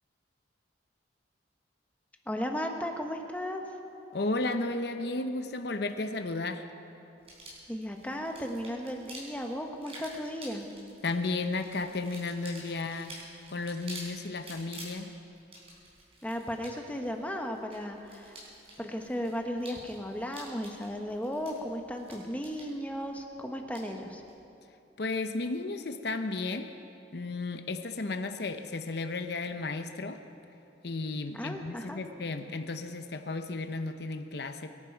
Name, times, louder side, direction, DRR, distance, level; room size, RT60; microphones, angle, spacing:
voice 1, 2.3-3.6 7.7-10.7 16.2-18.4 18.8-24.2 31.3-32.0, equal, 10° left, 3 dB, 1.1 m, -35 dB
voice 2, 4.1-6.6 11.0-13.2 13.5-15.1 25.0-26.7 27.1-30.2 30.8-34.7, left 3 dB, 65° left, 7 dB, 0.8 m, -33 dB
sound 1, 7.2-24.4, right 1 dB, 35° right, 4.1 m, -50 dB
23.0 x 11.0 x 4.6 m, 2.9 s
head